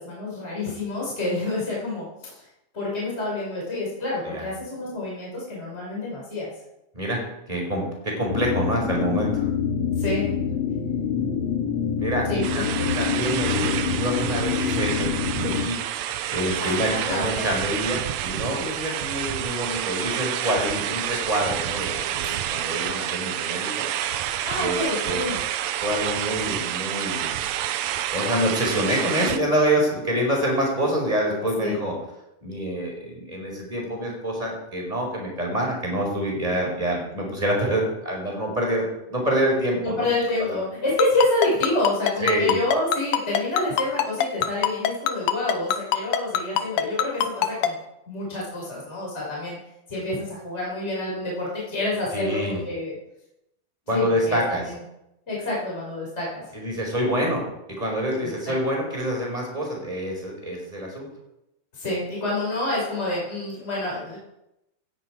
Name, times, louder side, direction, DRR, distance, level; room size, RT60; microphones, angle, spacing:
voice 1, 0.0-2.4 2.7-6.5 10.0-10.3 12.3-12.9 16.6-17.5 24.4-25.4 31.6-31.7 39.8-47.8 48.1-49.6 49.9-52.9 53.9-54.8 55.3-56.4 58.4-58.5 61.7-64.2, left 2 dB, 20° left, -5 dB, 5.5 m, -28 dB
voice 2, 7.5-9.5 12.0-15.1 15.4-23.9 24.5-25.2 25.8-27.4 28.1-31.9 32.4-40.1 40.4-40.6 42.2-42.6 52.1-52.6 53.9-54.6 56.5-57.4 57.8-61.1, equal, 10° right, -1 dB, 4.9 m, -26 dB
sound 1, 8.3-15.7, left 7 dB, 55° left, 2.9 m, -26 dB
sound 2, 12.4-29.4, right 11 dB, 75° right, 1.8 m, -29 dB
Ringtone, 41.0-47.7, left 10 dB, 85° left, 2.4 m, -22 dB
17.0 x 10.5 x 4.9 m, 0.86 s
omnidirectional pair, 3.6 m